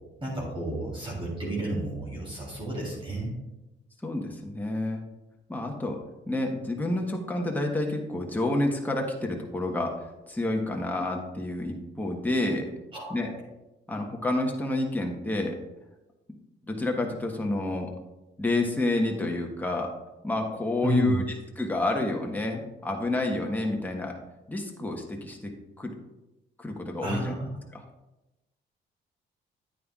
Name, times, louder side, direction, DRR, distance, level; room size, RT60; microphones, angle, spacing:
voice 1, 0.2-3.3 12.9-13.3 20.8-21.2 27.0-27.5, right 1 dB, 25° right, -4 dB, 3.2 m, -31 dB
voice 2, 4.0-5.0 5.5-6.0 6.3-12.7 13.1-13.3 13.9-15.6 16.7-17.9 18.4-19.9 20.2-21.2 21.6-24.2 24.5-25.5 25.8-25.9 26.6-27.3 27.7-27.8, left 2 dB, 10° left, 1 dB, 1.2 m, -29 dB
9.3 x 9.0 x 2.4 m, 1.0 s
cardioid pair, 90°, 20 cm